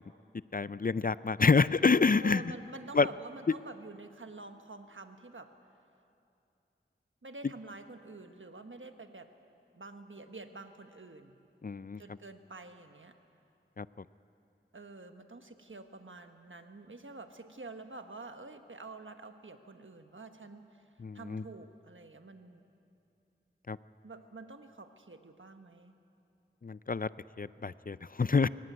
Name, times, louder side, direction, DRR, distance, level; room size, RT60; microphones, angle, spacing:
voice 1, 0.5-2.5 2.9-3.1 11.6-12.0 13.8-13.9 21.0-21.4 23.7-23.8 26.6-27.1 27.4-28.5, left 4 dB, 45° left, 17 dB, 0.4 m, -27 dB
voice 2, 2.2-5.5 7.2-9.3 9.7-11.4 12.0-13.1 14.7-20.8 21.1-22.6 24.0-25.9, right 3 dB, 75° right, 7 dB, 1.3 m, -48 dB
22.0 x 17.5 x 9.4 m, 2.7 s
wide cardioid pair, 40°, 20 cm